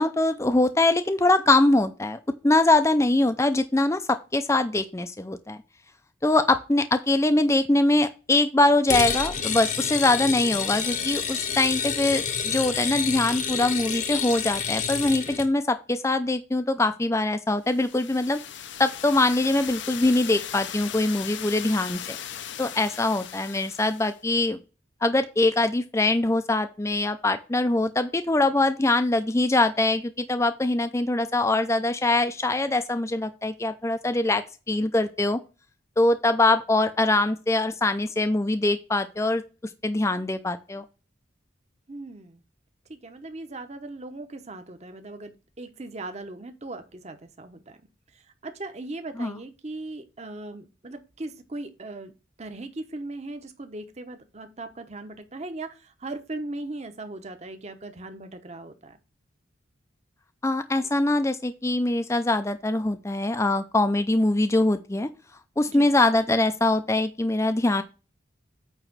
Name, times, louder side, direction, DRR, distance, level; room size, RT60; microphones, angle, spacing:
voice 1, 0.0-5.6 6.2-18.4 18.8-22.2 22.6-24.6 25.0-35.4 36.0-39.4 39.8-40.8 49.2-49.4 60.4-65.1 65.6-67.8, left 2 dB, 15° left, 9 dB, 0.4 m, -23 dB
sound 1, 8.9-15.5, left 6 dB, 35° left, 0.9 m, -28 dB
sound 2, 17.7-24.2, left 10 dB, 60° left, 0.6 m, -38 dB
voice 2, 41.9-42.4 42.9-47.8 48.1-59.0 65.7-65.9, right 2 dB, 35° right, 8 dB, 0.9 m, -38 dB
8.9 x 3.0 x 6.0 m, 0.32 s
head